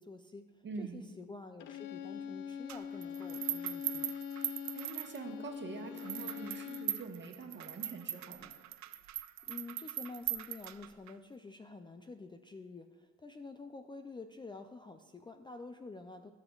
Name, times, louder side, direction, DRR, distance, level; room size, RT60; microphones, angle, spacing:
voice 1, 0.0-0.5 0.8-4.1 9.5-16.3, left 3 dB, 15° left, 7 dB, 0.4 m, -48 dB
voice 2, 0.6-1.0 4.7-8.5, right 4 dB, 40° right, 4 dB, 1.2 m, -44 dB
Bowed string instrument, 1.6-7.1, left 8 dB, 85° left, 0.5 m, -43 dB
sound 1, 2.7-5.5 6.0-11.1, right 13 dB, 65° right, 0.5 m, -40 dB
16.5 x 7.0 x 2.4 m, 1.4 s
cardioid pair, 90°, 30 cm